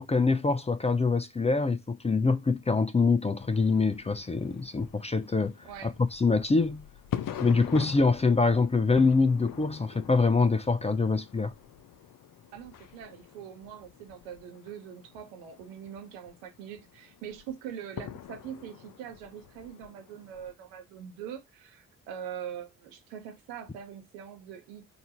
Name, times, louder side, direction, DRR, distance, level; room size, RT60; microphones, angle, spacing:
voice 1, 0.0-5.5 5.8-6.8 7.4-11.5, left 4 dB, 15° left, 0.5 m, -25 dB
sound 1, 3.4-20.6, left 9 dB, 50° left, 0.7 m, -44 dB
voice 2, 12.5-24.9, right 9 dB, 80° right, 1.1 m, -43 dB
3.9 x 2.7 x 4.3 m
hypercardioid pair, 40°, 42 cm